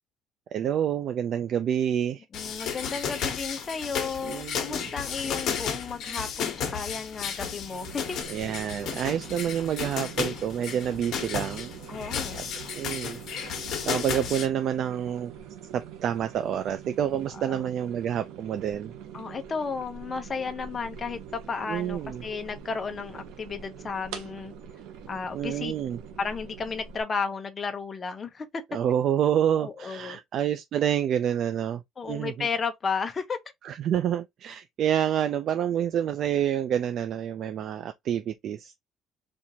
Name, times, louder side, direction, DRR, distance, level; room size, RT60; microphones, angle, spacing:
voice 1, 0.5-2.2 4.2-4.9 8.3-11.8 12.3-12.4 12.7-13.6 13.8-15.3 15.7-18.9 21.7-22.2 25.3-26.0 28.7-32.5 33.6-38.7, right 9 dB, 50° right, 0.3 m, -28 dB
sound 1, 2.3-14.5, left 7 dB, 55° left, 1.1 m, -33 dB
voice 2, 2.3-8.2 11.9-12.4 17.3-17.6 19.1-24.5 25.1-25.7 26.2-28.5 29.6-30.2 32.0-33.4, left 5 dB, 25° left, 0.7 m, -33 dB
sound 2, 7.7-27.0, right 8 dB, 85° right, 0.9 m, -44 dB
4.2 x 2.5 x 2.8 m
cardioid pair, 145°, 0 cm